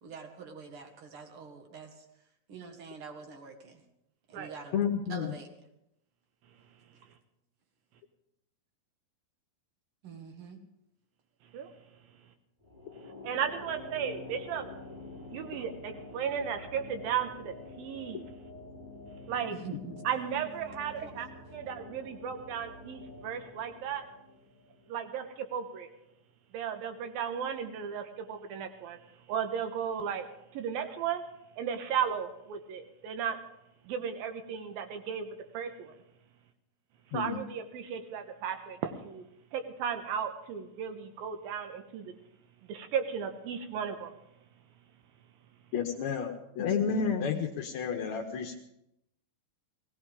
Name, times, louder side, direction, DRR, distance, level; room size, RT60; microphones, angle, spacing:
voice 1, 0.0-2.1 2.5-3.8 4.3-4.8 5.1-5.5 10.0-10.6 19.5-20.0 21.0-21.1, right 5 dB, 45° right, 3 dB, 2.2 m, -45 dB
voice 2, 4.7-5.3 37.1-37.4 45.7-48.6, left 6 dB, 70° left, 3 dB, 1.9 m, -31 dB
sound 1, 12.6-25.2, left 3 dB, 5° right, 6.3 m, -47 dB
voice 3, 13.2-14.7 15.3-18.3 19.3-19.6 20.0-21.3 21.5-24.0 24.9-25.9 26.5-29.0 29.3-30.3 30.5-31.2 31.6-33.4 33.9-36.0 37.1-39.2 39.5-42.1 42.7-44.1, right 8 dB, 90° right, 7 dB, 2.9 m, -35 dB
18.5 x 17.5 x 3.7 m, 0.82 s
omnidirectional pair, 4.1 m